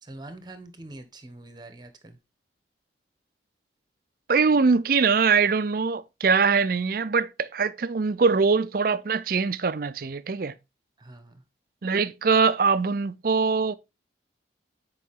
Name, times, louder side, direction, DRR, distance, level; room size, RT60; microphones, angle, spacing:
voice 1, 0.0-2.2 11.0-11.4, right 2 dB, 25° right, 1.1 m, -44 dB
voice 2, 4.3-10.5 11.8-13.7, right 5 dB, 50° right, 0.5 m, -22 dB
9.3 x 4.9 x 3.6 m
head